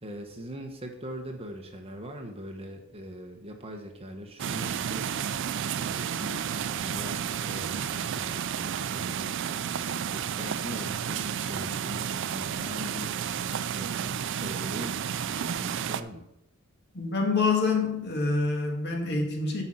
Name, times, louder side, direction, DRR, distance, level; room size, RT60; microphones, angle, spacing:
voice 1, 0.0-5.1 5.8-13.1 13.7-16.2, equal, 30° right, 3 dB, 1.4 m, -41 dB
sound 1, 4.4-16.0, right 8 dB, 60° right, 0.4 m, -31 dB
voice 2, 16.9-19.6, left 3 dB, 55° left, 1 dB, 2.0 m, -26 dB
8.8 x 6.4 x 5.7 m, 0.76 s
head